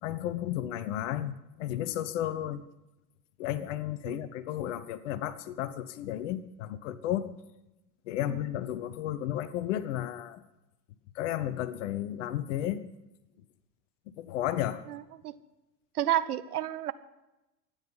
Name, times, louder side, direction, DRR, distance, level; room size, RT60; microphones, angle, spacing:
voice 1, 0.0-2.6 3.4-7.3 8.1-10.4 11.2-12.8 14.2-14.8, left 12 dB, 45° left, 16 dB, 0.9 m, -33 dB
voice 2, 14.9-15.3 15.9-16.9, right 12 dB, 65° right, 14 dB, 1.0 m, -31 dB
25.0 x 9.9 x 5.5 m, 0.97 s
figure-of-eight pair, 85°, 49 cm